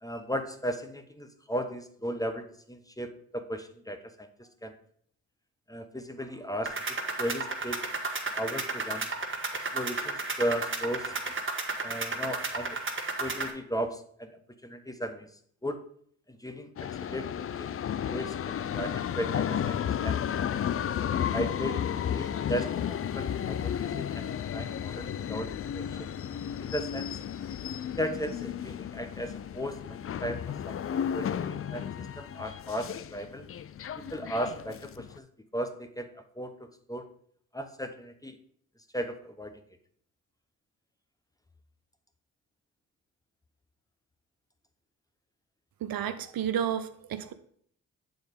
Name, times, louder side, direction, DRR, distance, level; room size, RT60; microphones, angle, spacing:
voice 1, 0.0-4.8 5.7-7.8 8.4-9.1 9.7-11.4 11.8-12.8 13.2-15.3 15.6-15.8 16.3-17.7 18.1-20.2 21.3-26.1 26.6-27.2 27.8-33.5 33.9-35.3 35.5-37.1 37.5-38.4 38.9-39.6, equal, 10° left, 8 dB, 0.9 m, -36 dB
sound 1, 6.7-13.5, right 3 dB, 30° right, 1.4 m, -33 dB
sound 2, 16.8-35.2, left 9 dB, 35° left, 0.4 m, -33 dB
voice 2, 45.8-47.3, right 9 dB, 65° right, 11 dB, 0.6 m, -31 dB
7.2 x 3.9 x 5.1 m, 0.62 s
supercardioid pair, 45°, 38 cm